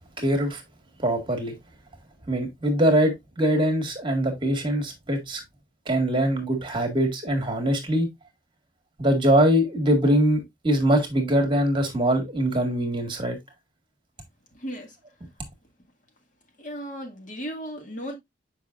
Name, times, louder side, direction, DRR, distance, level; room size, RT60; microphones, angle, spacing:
voice 1, 0.2-0.6 1.0-1.5 2.3-5.4 5.9-8.1 9.0-13.4, right 1 dB, 30° right, 1.7 m, -23 dB
voice 2, 14.5-15.0 16.6-18.2, equal, 45° left, 1.8 m, -35 dB
7.2 x 5.3 x 2.4 m
head